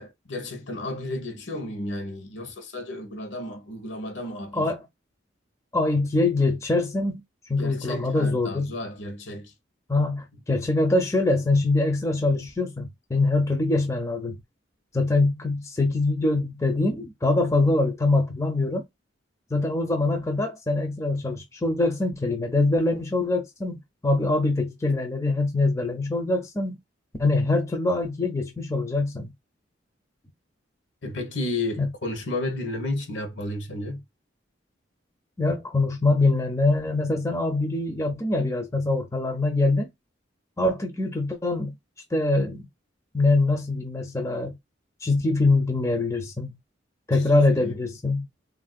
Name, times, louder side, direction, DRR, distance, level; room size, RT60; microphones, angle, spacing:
voice 1, 0.0-4.7 7.6-9.5 31.0-34.0 47.1-47.8, left 2 dB, 70° left, 0.9 m, -33 dB
voice 2, 5.7-7.2 7.5-8.7 9.9-14.4 14.9-18.8 19.5-23.8 24.0-26.8 27.2-29.3 31.8-31.9 35.4-39.9 40.6-41.7 42.1-42.6 43.1-44.6 45.0-46.5 47.1-48.3, left 2 dB, 15° left, 0.4 m, -24 dB
3.3 x 2.5 x 2.4 m
head